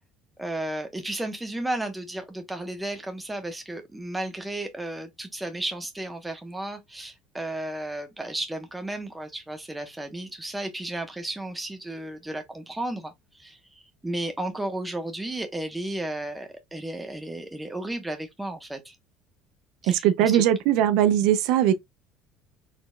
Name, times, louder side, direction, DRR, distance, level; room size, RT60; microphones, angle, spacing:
voice 1, 0.4-18.9 19.8-20.4, right 1 dB, 5° right, 1.1 m, -33 dB
voice 2, 19.8-21.7, right 11 dB, 75° right, 0.5 m, -20 dB
4.3 x 3.9 x 2.3 m
cardioid pair, 140°, 0 cm